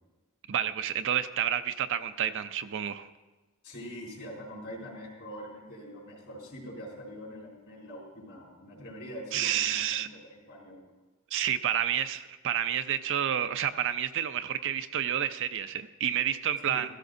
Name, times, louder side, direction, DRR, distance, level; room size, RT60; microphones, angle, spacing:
voice 1, 0.5-3.1 9.3-10.1 11.3-16.9, right 9 dB, 60° right, 10 dB, 0.5 m, -29 dB
voice 2, 3.6-10.8 16.7-16.8, equal, 65° left, -2 dB, 4.2 m, -44 dB
15.0 x 15.0 x 2.6 m, 1.2 s
head